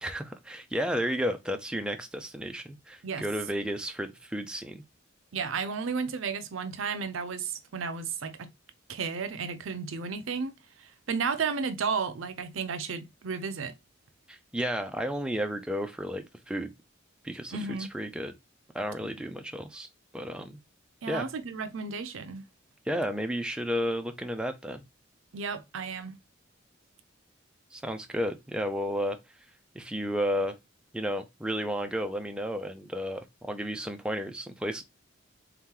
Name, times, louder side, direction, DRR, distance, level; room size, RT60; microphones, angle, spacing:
voice 1, 0.0-4.8 14.3-16.7 17.2-18.3 18.7-19.9 20.1-20.6 21.1-21.3 22.9-24.8 27.7-29.2 29.7-30.5 30.9-34.8, equal, 5° right, 0.4 m, -32 dB
voice 2, 5.3-8.5 8.9-10.5 11.1-13.7 17.5-17.9 21.0-22.4 25.3-26.1, right 5 dB, 75° right, 0.6 m, -33 dB
3.6 x 2.9 x 3.7 m
head